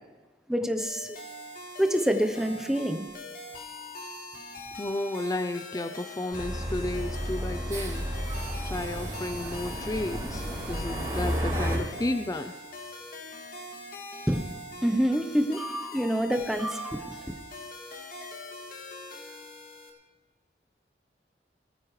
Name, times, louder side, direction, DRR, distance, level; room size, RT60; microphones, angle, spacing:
voice 1, 0.5-1.2 1.8-3.1 14.3-14.4 14.8-17.3, equal, 5° right, 6 dB, 0.8 m, -27 dB
sound 1, 0.8-19.9, left 2 dB, 55° left, 2.0 m, -43 dB
voice 2, 4.8-8.0 8.6-12.5, left 2 dB, 20° left, 8 dB, 0.5 m, -32 dB
sound 2, 6.3-11.8, equal, 25° right, 5.4 m, -32 dB
19.0 x 13.5 x 3.2 m, 1.3 s
head